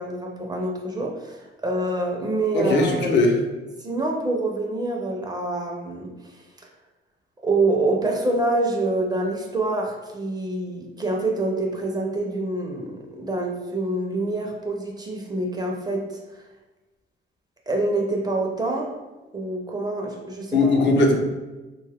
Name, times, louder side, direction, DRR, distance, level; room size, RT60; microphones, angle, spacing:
voice 1, 0.0-3.1 3.8-6.1 7.4-16.2 17.7-19.0 19.3-20.9, right 2 dB, 20° right, 0 dB, 0.5 m, -26 dB
voice 2, 2.5-3.3 20.5-21.2, left 2 dB, 65° left, 1 dB, 0.6 m, -19 dB
2.6 x 2.3 x 3.4 m, 1.1 s
cardioid pair, 90°, 20 cm